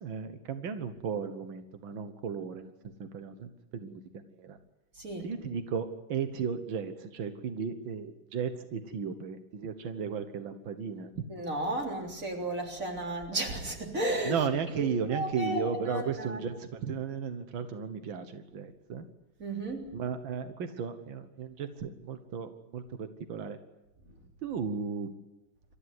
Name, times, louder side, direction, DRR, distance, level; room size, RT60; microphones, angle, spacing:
voice 1, 0.0-2.7 3.0-4.6 5.2-11.1 14.2-19.0 19.9-23.6 24.4-25.1, right 6 dB, 90° right, 9 dB, 2.0 m, -35 dB
voice 2, 5.0-5.3 11.3-14.3 14.8-14.9 15.1-16.4 19.4-19.9, right 1 dB, 40° right, 1 dB, 4.1 m, -33 dB
27.0 x 14.0 x 9.6 m, 1.0 s
omnidirectional pair, 2.1 m